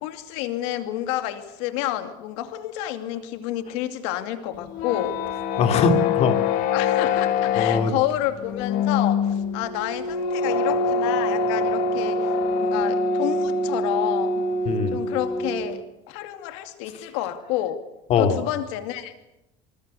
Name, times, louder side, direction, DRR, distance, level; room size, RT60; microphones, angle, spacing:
voice 1, 0.0-5.2 6.7-14.4 14.9-17.8 18.2-19.1, left 13 dB, 85° left, 9 dB, 2.5 m, -29 dB
sound 1, 4.6-15.8, left 4 dB, 65° left, 2.1 m, -24 dB
voice 2, 5.6-6.4 7.6-7.9 14.6-15.0 18.1-18.4, left 5 dB, 45° left, 7 dB, 3.3 m, -21 dB
26.0 x 25.5 x 6.9 m, 0.88 s
cardioid pair, 160°, 15 cm